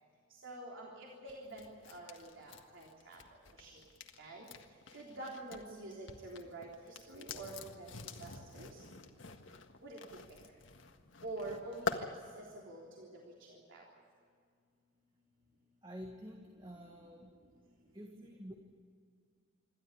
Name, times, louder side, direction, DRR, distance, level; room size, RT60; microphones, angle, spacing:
voice 1, 0.4-3.2 3.6-3.7 4.2-4.5 4.9-8.8 9.8-10.0 11.2-12.1 12.4-13.1 13.7-13.8, right 2 dB, 90° right, -3 dB, 3.5 m, -47 dB
sound 1, 1.3-5.6 5.9-12.0, left 4 dB, 85° left, 1.7 m, -46 dB
voice 2, 15.8-17.4 17.9-18.6, equal, 20° right, 2 dB, 1.7 m, -49 dB
27.0 x 13.0 x 9.8 m, 2.2 s
head